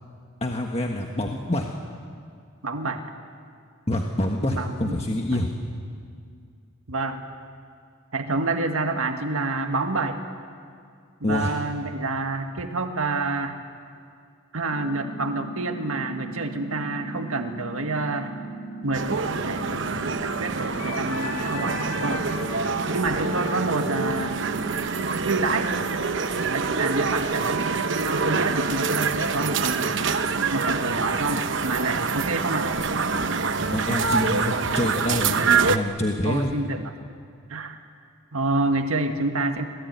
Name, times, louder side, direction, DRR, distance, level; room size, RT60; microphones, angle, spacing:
voice 1, 0.4-1.7 3.9-5.5 11.2-11.5 33.7-35.4 35.7-36.5, left 1 dB, 30° left, 1 dB, 1.5 m, -26 dB
voice 2, 2.6-3.0 4.5-5.0 5.3-5.4 6.9-7.2 8.1-10.2 11.2-13.6 14.5-18.4 18.8-22.3 22.9-24.4 25.2-25.7 26.5-30.2 30.5-32.7 36.2-36.9 37.5-37.8 38.3-39.6, right 2 dB, 90° right, 5 dB, 1.8 m, -28 dB
sound 1, 14.7-24.7, right 3 dB, 60° left, 4.2 m, -38 dB
sound 2, 18.9-35.8, right 4 dB, 60° right, 1.0 m, -26 dB
Wind instrument woodwind instrument, 20.8-26.2, left 2 dB, 85° left, 5.7 m, -38 dB
26.5 x 19.0 x 9.5 m, 2.3 s
head